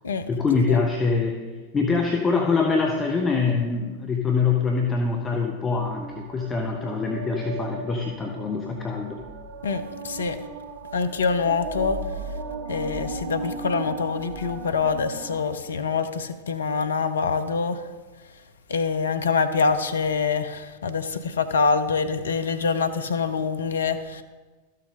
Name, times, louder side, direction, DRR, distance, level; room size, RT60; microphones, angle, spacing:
voice 1, 0.3-1.4 1.7-9.2, left 4 dB, 20° left, 1 dB, 0.9 m, -24 dB
sound 1, 5.7-15.5, right 3 dB, 40° right, 0.8 m, -36 dB
voice 2, 9.6-10.4 10.9-12.0 12.7-17.8 18.7-24.2, left 5 dB, 70° left, 10 dB, 0.6 m, -25 dB
13.0 x 6.6 x 3.7 m, 1.3 s
figure-of-eight pair, 90°, 0 cm